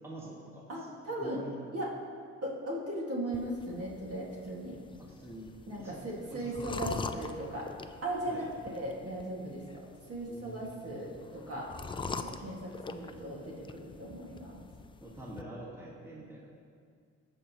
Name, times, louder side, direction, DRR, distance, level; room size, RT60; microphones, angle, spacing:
voice 1, 0.0-0.9 1.2-1.6 5.0-5.5 5.8-7.2 8.2-8.5 10.2-11.0 15.0-16.5, right 1 dB, 10° right, -4 dB, 1.5 m, -46 dB
voice 2, 0.7-1.4 1.7-1.9 2.4-4.8 5.7-7.7 8.0-9.6 10.1-11.7 12.2-14.7, right 1 dB, 50° right, -3 dB, 1.9 m, -37 dB
sound 1, 3.3-15.4, left 4 dB, 20° left, 0.3 m, -44 dB
15.0 x 5.3 x 3.0 m, 2.2 s
cardioid pair, 90°, 30 cm